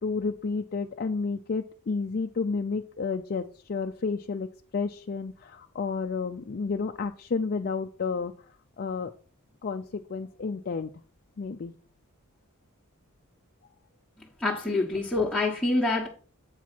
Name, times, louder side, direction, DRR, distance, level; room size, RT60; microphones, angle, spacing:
voice 1, 0.0-8.3 8.8-9.1 9.6-10.9 11.4-11.7, left 4 dB, 45° left, 0.4 m, -31 dB
voice 2, 14.4-16.1, left 2 dB, 5° left, 1.3 m, -26 dB
8.2 x 4.6 x 5.9 m
head